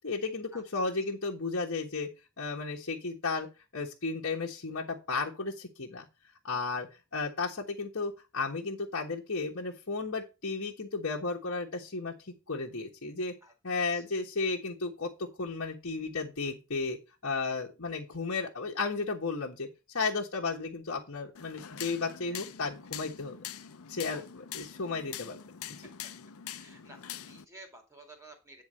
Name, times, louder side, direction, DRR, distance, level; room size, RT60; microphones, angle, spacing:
voice 1, 0.0-2.1 2.4-3.5 3.7-6.1 6.4-12.1 12.5-13.3 13.6-17.0 17.2-19.7 19.9-23.4 23.9-25.4 25.7-25.8, left 4 dB, 60° left, -3 dB, 1.4 m, -34 dB
sound 1, 21.3-27.4, left 10 dB, 75° left, 0.6 m, -44 dB
voice 2, 26.5-28.6, right 1 dB, 15° right, 3 dB, 2.4 m, -52 dB
9.3 x 4.0 x 6.5 m, 0.28 s
head